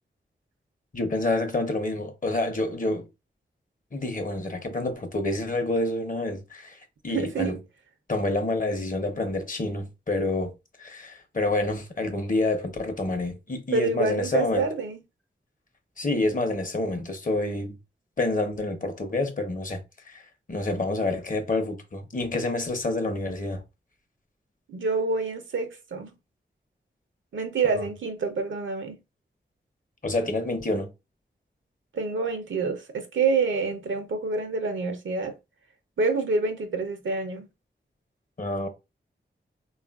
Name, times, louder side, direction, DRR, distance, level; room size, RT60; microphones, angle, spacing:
voice 1, 0.9-3.1 3.9-6.8 7.0-7.6 8.1-10.5 10.8-14.6 16.0-17.8 18.2-19.8 20.1-20.2 20.5-23.6 30.0-30.9 38.4-38.7, left 2 dB, 45° left, 0.7 m, -28 dB
voice 2, 7.1-7.6 13.7-15.0 24.7-26.1 27.3-29.0 31.9-35.4 36.0-37.5, right 4 dB, 80° right, 0.6 m, -27 dB
3.4 x 2.4 x 2.2 m
cardioid pair, 40°, 20 cm